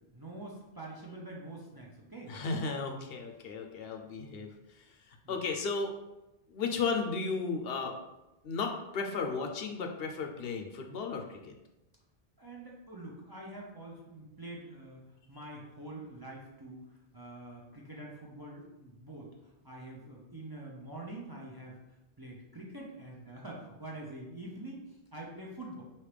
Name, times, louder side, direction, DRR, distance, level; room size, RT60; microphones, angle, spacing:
voice 1, 0.1-2.3 5.2-5.4 12.4-15.0 15.3-16.8 17.1-19.3 19.6-21.8 22.2-25.8, right 2 dB, 25° right, -3 dB, 0.6 m, -45 dB
voice 2, 2.3-5.9 6.5-8.0 8.4-11.5, left 4 dB, 70° left, 4 dB, 0.8 m, -35 dB
4.9 x 2.9 x 3.3 m, 0.97 s
omnidirectional pair, 1.1 m